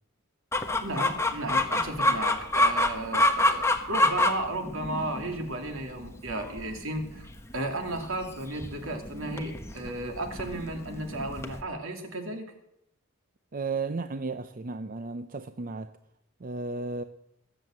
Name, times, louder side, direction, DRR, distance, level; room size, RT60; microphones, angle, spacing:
Chicken rooster, 0.5-11.6, left 1 dB, 15° left, 1.2 m, -28 dB
voice 1, 0.8-12.5, right 1 dB, 70° right, 2.7 m, -34 dB
voice 2, 13.5-16.0 16.4-17.0, right 3 dB, 40° right, 0.6 m, -34 dB
21.0 x 7.8 x 7.8 m
head